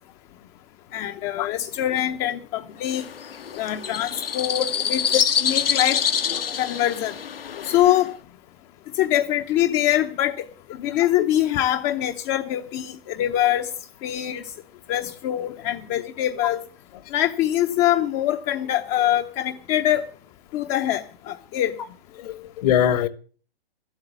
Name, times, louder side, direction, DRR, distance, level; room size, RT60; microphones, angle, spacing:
voice 1, 0.9-3.0 3.5-6.0 6.6-7.1 7.6-8.1 9.0-10.5 10.8-13.7 14.0-14.4 14.9-16.6 17.1-20.0 20.5-21.7, left 12 dB, 25° left, 0.7 m, -24 dB
sound 1, 2.9-8.1, left 8 dB, 70° left, 1.1 m, -26 dB
voice 2, 22.2-23.1, left 10 dB, 40° left, 1.1 m, -23 dB
13.0 x 8.2 x 8.3 m
figure-of-eight pair, 125°, 30 cm